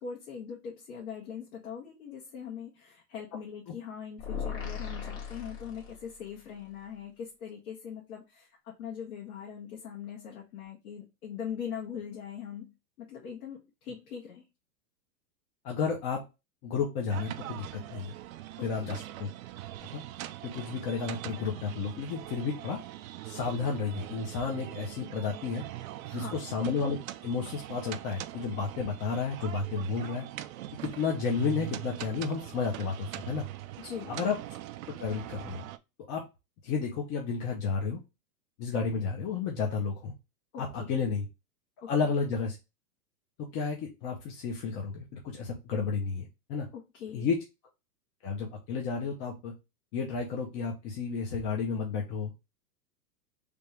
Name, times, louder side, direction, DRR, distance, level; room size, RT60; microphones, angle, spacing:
voice 1, 0.0-14.4 18.7-19.0 26.1-26.3 33.8-34.2 40.8-40.9 41.8-41.9 46.7-47.3, left 7 dB, 65° left, -3 dB, 1.5 m, -41 dB
sound 1, 4.2-6.3, left 7 dB, 45° left, 1.6 m, -38 dB
voice 2, 15.6-16.2 16.6-17.6 17.9-18.2 18.6-19.3 19.9-20.1 20.4-22.8 23.3-25.6 26.1-27.0 27.2-30.3 30.8-33.5 34.1-34.4 35.0-35.7 36.1-36.2 36.6-38.0 38.6-40.1 40.6-41.3 41.9-42.6 43.4-46.7 47.1-47.4 48.2-49.5 49.9-52.3, left 5 dB, 25° left, 0 dB, 0.6 m, -32 dB
sound 2, 17.1-35.8, right 14 dB, 60° right, 0.5 m, -42 dB
3.4 x 2.9 x 3.3 m, 0.26 s
hypercardioid pair, 140°, 47 cm